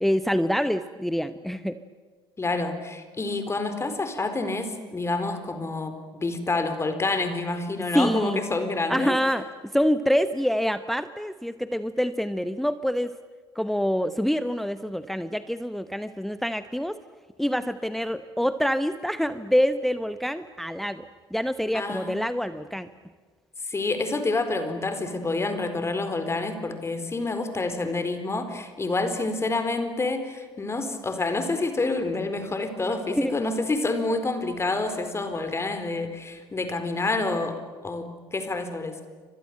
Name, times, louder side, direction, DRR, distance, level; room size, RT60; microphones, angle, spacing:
voice 1, 0.0-1.8 7.9-8.4 8.9-9.4 9.7-13.1 13.5-17.0 17.4-21.0 21.3-22.9 33.2-33.4, equal, ahead, 12 dB, 1.0 m, -26 dB
voice 2, 2.4-9.1 21.7-22.2 23.6-37.5 37.8-38.9, left 3 dB, 20° left, 8 dB, 4.3 m, -28 dB
30.0 x 25.5 x 7.8 m, 1.5 s
figure-of-eight pair, 55°, 13 cm